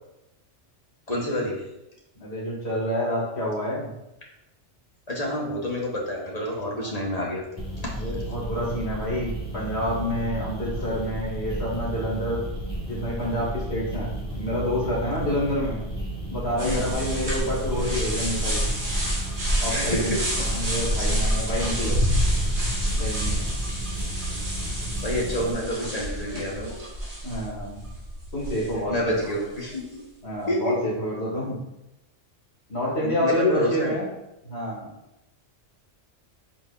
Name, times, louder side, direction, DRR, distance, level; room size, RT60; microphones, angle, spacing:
voice 1, 1.1-1.7 5.1-7.4 7.8-7.9 10.8-10.9 15.1-15.4 16.6-16.9 19.5-20.6 25.0-27.2 28.8-30.0 30.5-30.7 32.8-34.0, equal, 30° left, -3 dB, 1.6 m, -29 dB
voice 2, 2.2-3.9 7.9-12.4 12.9-15.8 16.3-18.6 19.6-20.1 20.5-22.0 23.0-23.4 27.2-27.8 28.3-29.1 30.2-31.6 32.7-34.1 34.4-34.9, equal, 60° left, -6 dB, 2.9 m, -28 dB
sound 1, 7.6-25.5, right 1 dB, 5° left, 1.9 m, -33 dB
sound 2, 16.6-29.1, equal, 65° right, 2.2 m, -28 dB
8.5 x 5.2 x 2.7 m, 0.91 s
omnidirectional pair, 1.2 m